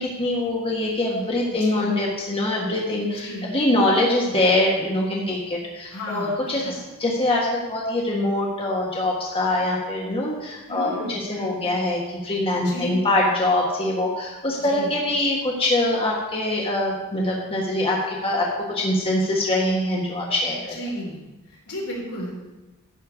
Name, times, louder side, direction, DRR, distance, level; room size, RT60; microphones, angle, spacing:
voice 1, 0.0-20.8, left 1 dB, 25° left, -3 dB, 1.4 m, -23 dB
voice 2, 1.5-1.9 3.1-3.6 5.9-6.4 6.6-6.7 10.7-11.6 12.6-13.3 14.6-14.9 20.7-21.2 21.5-22.3, equal, 75° left, -3 dB, 3.7 m, -33 dB
12.0 x 4.5 x 8.2 m, 1.1 s
head